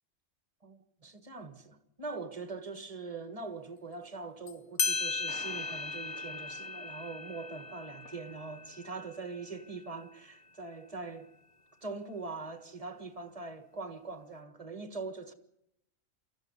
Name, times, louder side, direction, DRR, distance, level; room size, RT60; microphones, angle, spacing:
voice 1, 0.6-11.3 11.8-15.3, right 3 dB, 25° right, 1.6 m, -42 dB
sound 1, 4.5-4.6 4.8-9.9, left 4 dB, 40° left, 1.1 m, -37 dB
sound 2, 5.3-9.6, left 2 dB, 55° left, 3.1 m, -54 dB
24.0 x 14.5 x 9.6 m
omnidirectional pair, 1.4 m